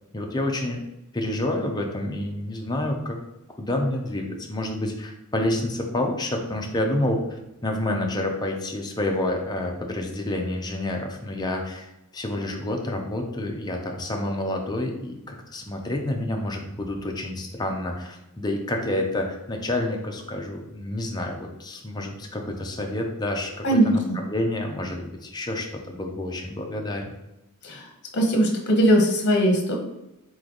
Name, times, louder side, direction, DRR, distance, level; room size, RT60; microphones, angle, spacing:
voice 1, 0.1-0.8 1.1-3.2 3.6-7.2 7.6-27.1, left 1 dB, 20° left, 1 dB, 0.6 m, -28 dB
voice 2, 23.6-23.9 27.6-27.8 28.1-29.7, right 1 dB, 50° left, 1 dB, 1.0 m, -19 dB
4.2 x 3.2 x 3.9 m, 0.92 s
head